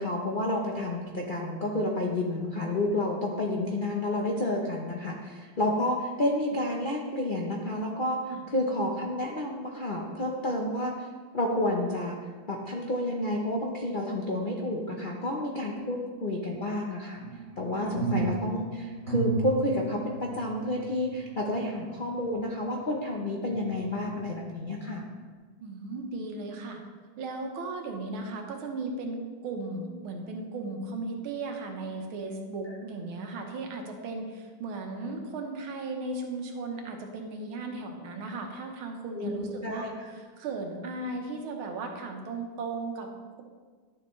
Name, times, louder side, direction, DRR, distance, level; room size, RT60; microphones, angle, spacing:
voice 1, 0.0-8.2 8.5-11.1 11.3-12.2 12.5-17.2 17.6-25.0 39.1-39.9, left 1 dB, 80° left, -1 dB, 0.4 m, -30 dB
sound 1, 17.2-23.0 23.5-24.6 25.1-25.2, right 4 dB, 35° right, 1.7 m, -34 dB
voice 2, 25.6-26.8 27.2-43.1, right 3 dB, 80° right, 3 dB, 1.9 m, -36 dB
11.5 x 7.0 x 3.1 m, 1.5 s
omnidirectional pair, 2.2 m